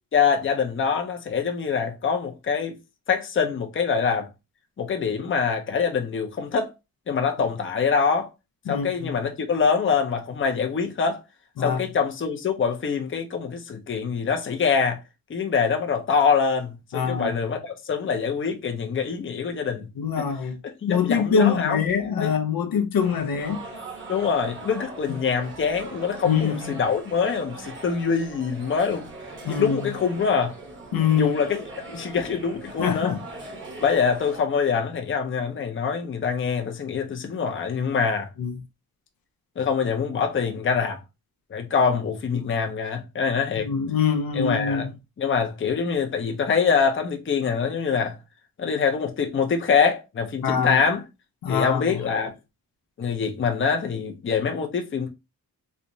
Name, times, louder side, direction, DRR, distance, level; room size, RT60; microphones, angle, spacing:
voice 1, 0.1-2.8 3.1-4.3 4.8-6.7 7.1-8.3 8.7-11.2 11.6-15.0 15.3-19.9 20.2-20.3 20.8-21.8 22.2-22.3 24.1-29.1 29.5-30.6 31.1-33.1 33.8-38.3 39.6-41.0 41.5-43.7 44.3-48.2 48.6-51.0 51.5-52.3 53.0-55.1, left 6 dB, 35° left, 0.6 m, -24 dB
voice 2, 8.7-9.1 11.6-11.8 16.9-17.4 20.0-20.6 20.9-23.6 26.2-26.7 29.4-29.8 30.9-31.4 32.8-33.2 38.4-38.5 42.3-42.4 43.6-44.9 50.4-50.8 51.4-51.8, left 6 dB, 80° left, 0.6 m, -24 dB
sound 1, 23.0-34.4, right 2 dB, 35° right, 0.8 m, -40 dB
3.3 x 2.9 x 2.6 m
wide cardioid pair, 160°, 34 cm